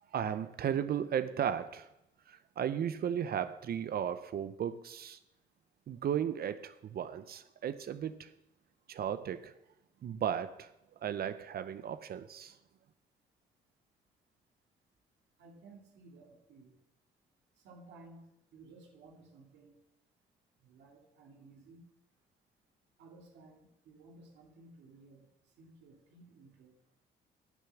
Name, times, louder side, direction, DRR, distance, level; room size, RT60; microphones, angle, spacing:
voice 1, 0.0-1.9 2.3-5.2 5.9-8.3 8.9-9.5 10.0-10.7 11.0-12.6, right 9 dB, 60° right, 12 dB, 0.7 m, -35 dB
voice 2, 15.4-16.8 17.6-19.7 20.6-21.8 23.0-25.3 25.6-26.8, right 3 dB, 80° right, 1 dB, 2.4 m, -57 dB
9.4 x 7.1 x 7.0 m, 0.87 s
supercardioid pair, 65°, 18 cm